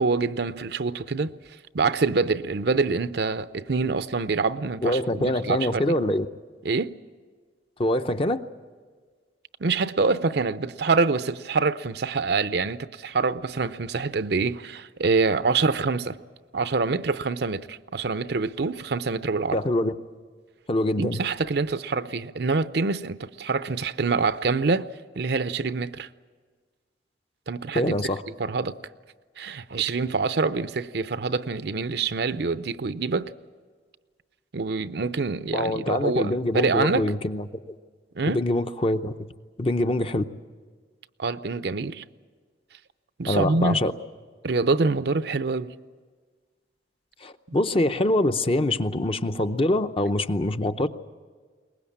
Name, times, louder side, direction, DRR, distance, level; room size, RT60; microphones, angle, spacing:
voice 1, 0.0-1.3 1.7-6.0 6.6-6.9 9.6-16.2 16.5-19.6 21.0-24.9 25.2-26.1 27.5-27.9 28.4-28.8 29.4-33.3 34.5-37.1 38.2-38.4 41.2-42.0 43.2-43.8 44.4-45.7 47.5-47.6, right 4 dB, 60° right, 0.6 m, -25 dB
voice 2, 4.8-6.3 7.8-8.4 19.5-19.9 20.7-21.2 27.7-28.2 35.5-37.7 38.3-39.2 39.6-40.2 43.3-43.9 47.2-50.9, left 1 dB, 30° left, 0.7 m, -24 dB
22.5 x 20.0 x 8.6 m
head